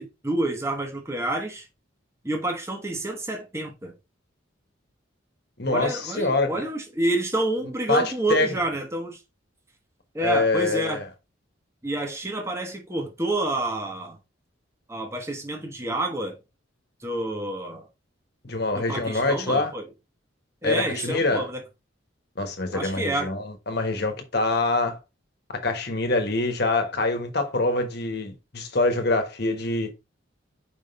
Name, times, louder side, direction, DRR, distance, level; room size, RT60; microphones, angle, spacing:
voice 1, 0.0-1.7 2.2-3.9 5.7-9.2 10.1-11.0 11.8-14.2 14.9-16.4 17.0-17.9 18.7-19.9 20.6-21.6 22.7-23.3, right 1 dB, 15° right, 1.2 m, -28 dB
voice 2, 5.6-6.5 7.9-8.5 10.2-11.1 18.4-19.7 20.6-21.4 22.4-25.0 25.5-29.9, left 2 dB, 50° left, 1.4 m, -25 dB
5.2 x 3.7 x 5.3 m
head